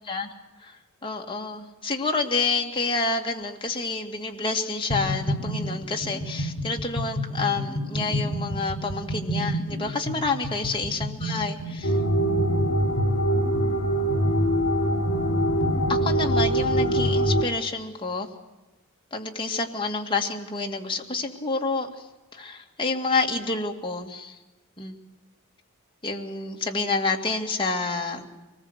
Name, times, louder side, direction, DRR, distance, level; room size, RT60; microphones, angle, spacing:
voice 1, 1.0-12.0 15.9-18.3 19.1-21.9 22.3-24.4 24.8-24.9 26.0-28.3, left 3 dB, 25° left, 1 dB, 2.2 m, -28 dB
sound 1, 4.9-17.2, equal, 55° left, 6.1 m, -31 dB
sound 2, 11.8-17.4, right 1 dB, 70° left, 2.9 m, -23 dB
24.0 x 20.0 x 8.2 m, 1.1 s
head